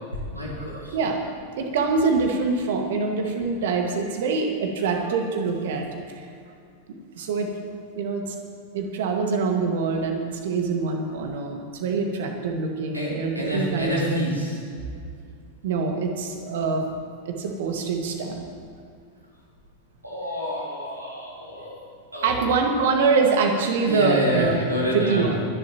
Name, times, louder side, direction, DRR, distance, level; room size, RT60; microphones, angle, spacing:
voice 1, 0.3-1.0 12.9-14.6 20.0-21.8 22.1-22.5 23.0-25.3, equal, 85° right, -5 dB, 3.4 m, -28 dB
voice 2, 1.6-6.3 6.9-7.5 7.9-8.4 8.7-14.1 15.6-16.9 17.3-18.4 22.2-24.6 24.9-25.4, right 4 dB, 55° right, 3 dB, 1.8 m, -25 dB
24.5 x 11.0 x 3.0 m, 2.3 s
figure-of-eight pair, 90°, 0 cm